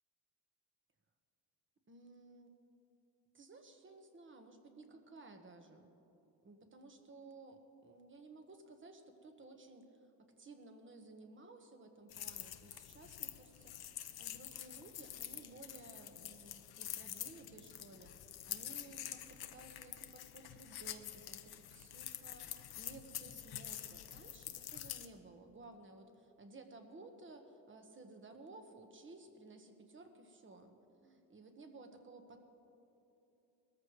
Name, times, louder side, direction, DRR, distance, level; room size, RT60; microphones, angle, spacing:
voice 1, 1.9-2.5 3.3-5.9 6.4-10.1 10.4-13.7 14.2-32.4, right 3 dB, 30° right, 5 dB, 1.4 m, -56 dB
sound 1, 12.1-25.1, left 12 dB, 65° left, 0.8 m, -47 dB
21.0 x 14.0 x 3.2 m, 2.9 s
cardioid pair, 115°, 41 cm